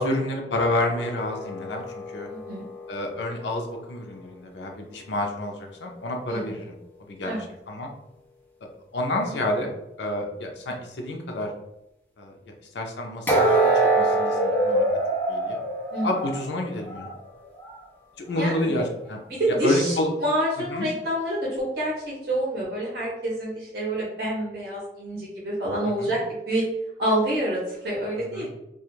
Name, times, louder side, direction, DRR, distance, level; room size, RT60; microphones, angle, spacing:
voice 1, 0.0-1.8 2.1-2.3 2.9-6.8 7.1-7.3 7.7-7.9 8.9-9.7 10.0-11.5 12.2-12.3 12.7-13.7 14.0-14.8 15.3-15.6 16.0-17.1 18.2-19.2 19.6-20.1 20.7-20.9 25.8-26.1 28.2-28.5, left 1 dB, 80° left, 2 dB, 0.5 m, -29 dB
sound 1, 0.8-3.9 13.3-17.2 17.6-17.8 18.4-18.5, right 2 dB, 10° left, 0.4 m, -25 dB
voice 2, 2.3-2.6 6.3-6.4 7.2-7.4 15.9-16.2 18.3-18.7 19.3-26.7 27.0-28.5, right 1 dB, 65° right, -6 dB, 0.7 m, -27 dB
2.4 x 2.3 x 3.0 m, 0.88 s
head